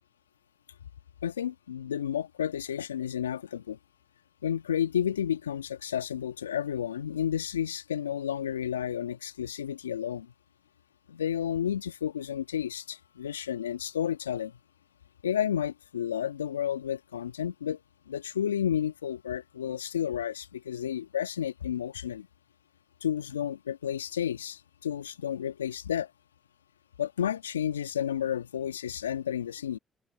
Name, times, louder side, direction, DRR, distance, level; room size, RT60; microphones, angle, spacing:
voice 1, 1.2-3.8 4.4-10.3 11.1-14.6 15.2-17.8 18.1-22.3 23.0-26.1 27.0-29.8, left 9 dB, 85° left, 1.5 m, -31 dB
open air
figure-of-eight pair, 40°, 0 cm